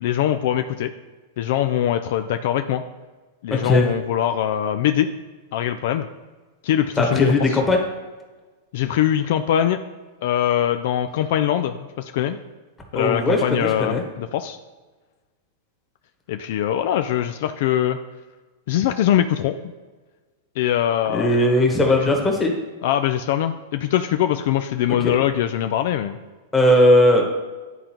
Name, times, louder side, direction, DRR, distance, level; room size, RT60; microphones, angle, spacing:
voice 1, 0.0-0.9 1.4-2.8 3.4-5.1 5.5-6.1 6.6-7.6 8.7-9.8 10.2-12.4 12.9-14.6 16.3-18.0 18.7-19.6 20.6-21.5 22.0-22.1 22.8-26.2, left 11 dB, 65° left, 8 dB, 0.3 m, -22 dB
voice 2, 3.5-3.9 7.0-7.9 12.9-14.0 21.1-22.5 25.0-25.2 26.5-27.2, left 1 dB, 15° left, 1 dB, 1.4 m, -18 dB
11.0 x 3.7 x 3.0 m, 1.3 s
hypercardioid pair, 115°, 0 cm